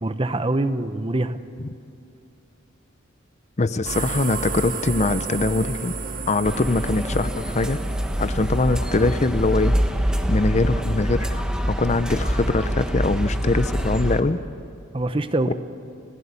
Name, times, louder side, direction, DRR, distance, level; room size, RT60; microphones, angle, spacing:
voice 1, 0.0-1.4 14.9-15.5, right 2 dB, 25° right, 11 dB, 0.8 m, -24 dB
voice 2, 3.6-6.0 6.3-7.8 8.2-9.8 10.1-11.4 11.8-14.4 15.5-15.6, left 2 dB, 35° left, 13 dB, 0.6 m, -22 dB
sound 1, 3.8-10.7, right 4 dB, 45° right, 1.7 m, -33 dB
sound 2, 6.4-14.2, equal, 5° right, 1.2 m, -25 dB
30.0 x 15.5 x 8.3 m, 2.6 s
head